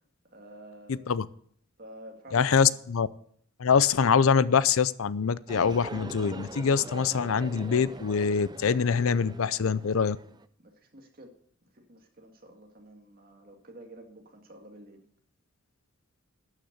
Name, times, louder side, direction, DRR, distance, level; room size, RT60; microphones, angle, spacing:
voice 1, 0.3-1.1 1.8-2.8 10.6-11.3 11.7-15.0, right 1 dB, 45° right, 2 dB, 2.1 m, -50 dB
voice 2, 0.9-1.3 2.3-3.1 3.6-10.2, left 6 dB, 80° left, 18 dB, 0.5 m, -24 dB
sound 1, 5.5-10.5, right 2 dB, 20° right, 0.4 m, -42 dB
12.0 x 6.6 x 7.9 m, 0.63 s
head